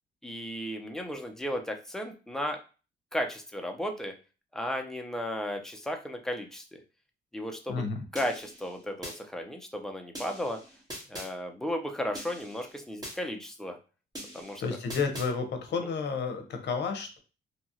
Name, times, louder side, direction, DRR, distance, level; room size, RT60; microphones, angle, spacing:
voice 1, 0.2-2.6 3.1-4.1 4.5-6.8 7.3-7.8 8.1-10.6 11.1-13.8 14.3-14.6 15.8-15.9, equal, ahead, 4 dB, 0.5 m, -34 dB
sound 1, 8.2-9.2 10.1-11.3 12.1-13.2 14.1-15.3, equal, 20° right, 1.2 m, -43 dB
voice 2, 14.6-17.2, left 5 dB, 60° left, 6 dB, 0.7 m, -31 dB
2.9 x 2.3 x 2.7 m, 0.33 s
cardioid pair, 90°, 20 cm